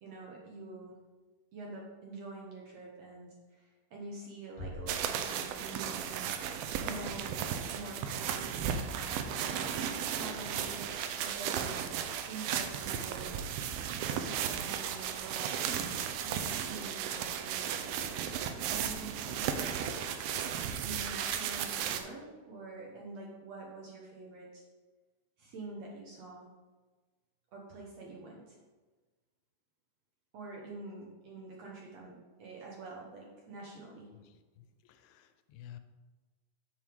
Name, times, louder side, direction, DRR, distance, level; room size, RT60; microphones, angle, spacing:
voice 1, 0.0-1.0 1.5-7.4 7.7-9.3 9.7-11.9 12.3-13.6 14.2-24.6 25.4-26.5 27.5-28.6 30.3-34.1, right 3 dB, 60° right, -3 dB, 1.9 m, -46 dB
sound 1, 4.6-6.2, equal, 45° left, 0.6 m, -46 dB
sound 2, 4.9-22.0, right 8 dB, 85° right, 2.4 m, -35 dB
voice 2, 34.6-35.8, left 11 dB, 85° left, 9 dB, 2.4 m, -52 dB
8.1 x 7.5 x 3.5 m, 1.3 s
omnidirectional pair, 4.2 m